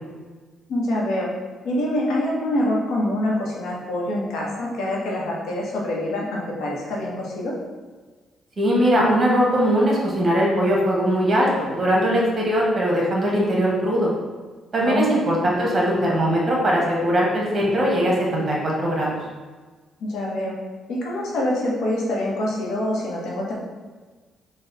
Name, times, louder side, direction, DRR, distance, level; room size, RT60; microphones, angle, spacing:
voice 1, 0.7-1.3 1.6-7.5 14.8-15.2 20.0-20.5 20.9-23.5, left 1 dB, 80° left, -3 dB, 0.9 m, -25 dB
voice 2, 8.6-14.1 14.7-19.2, equal, 35° right, -3 dB, 1.2 m, -20 dB
4.1 x 2.3 x 3.9 m, 1.4 s
cardioid pair, 90°, 0 cm